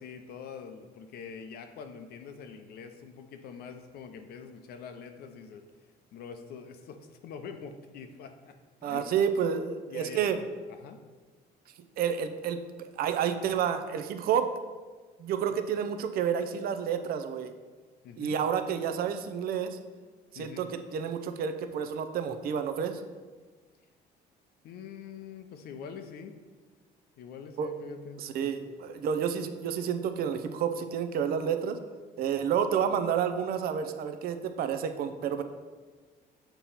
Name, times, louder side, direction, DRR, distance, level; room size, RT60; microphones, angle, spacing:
voice 1, 0.0-5.6 6.1-8.6 8.8-9.1 9.9-11.0 18.0-18.4 20.3-20.7 24.6-26.4 27.2-28.5, left 6 dB, 70° left, 6 dB, 0.6 m, -44 dB
voice 2, 8.8-10.4 12.0-14.5 15.2-17.5 18.2-19.8 20.3-23.0 27.6-27.7 28.2-31.8 32.2-35.4, right 8 dB, 60° right, 9 dB, 0.5 m, -30 dB
6.7 x 3.0 x 5.5 m, 1.4 s
cardioid pair, 110°, 17 cm